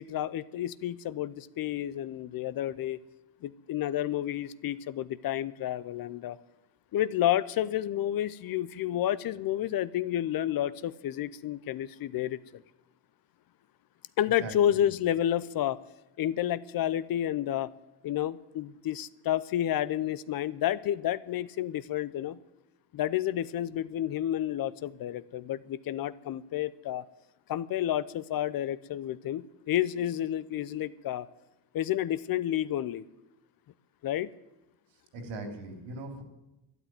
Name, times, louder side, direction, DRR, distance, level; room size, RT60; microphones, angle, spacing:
voice 1, 0.0-3.0 3.4-6.4 6.9-12.6 14.2-15.8 16.2-17.7 18.0-22.4 22.9-27.0 27.5-31.3 31.7-33.0 34.0-34.3, left 12 dB, 50° left, 17 dB, 0.6 m, -30 dB
voice 2, 14.4-15.0 35.1-36.2, right 2 dB, 70° right, 5 dB, 3.4 m, -40 dB
12.0 x 10.5 x 9.2 m, 0.97 s
cardioid pair, 105°, 45 cm